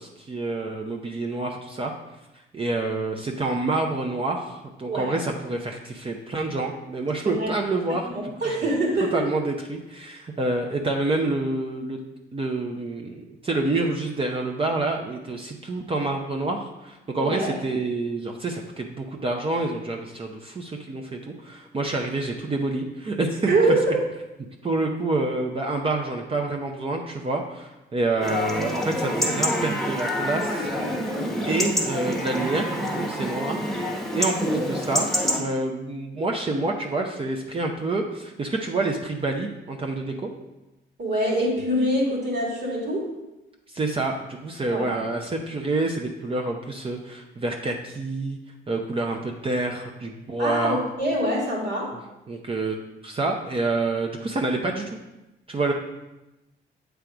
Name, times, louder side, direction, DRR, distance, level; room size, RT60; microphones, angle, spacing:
voice 1, 0.0-1.9 2.5-8.1 8.4-8.7 9.1-23.5 24.6-31.0 31.4-33.8 34.1-35.1 35.4-40.3 43.7-48.4 48.7-50.8 52.3-52.8 53.0-55.0 55.5-55.7, right 2 dB, 30° right, 1 dB, 0.6 m, -28 dB
voice 2, 4.9-5.2 7.2-7.5 8.0-9.2 17.2-17.5 23.4-24.0 41.0-43.1 44.7-44.9 50.4-52.0, right 1 dB, 60° right, -2 dB, 2.3 m, -24 dB
Chatter / Livestock farm animals working animals / Chirp tweet, 28.2-35.4, equal, ahead, 1.3 m, -27 dB
7.5 x 3.5 x 4.9 m, 0.99 s
cardioid pair, 90°, 20 cm